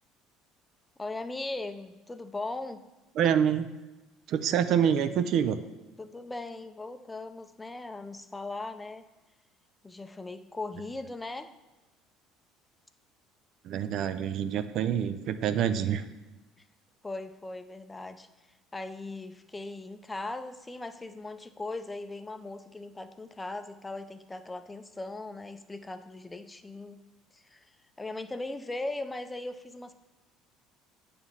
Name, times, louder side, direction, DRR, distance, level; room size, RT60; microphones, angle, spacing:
voice 1, 1.0-2.8 6.0-9.1 9.8-11.5 16.6-16.7 17.0-18.3 18.7-27.0 27.3-27.7 28.0-29.9, left 2 dB, 15° left, 10 dB, 0.5 m, -39 dB
voice 2, 3.2-3.7 4.3-5.6 13.6-16.0, right 8 dB, 60° right, 11 dB, 0.4 m, -26 dB
7.2 x 3.4 x 5.5 m, 1.1 s
supercardioid pair, 80°, 0 cm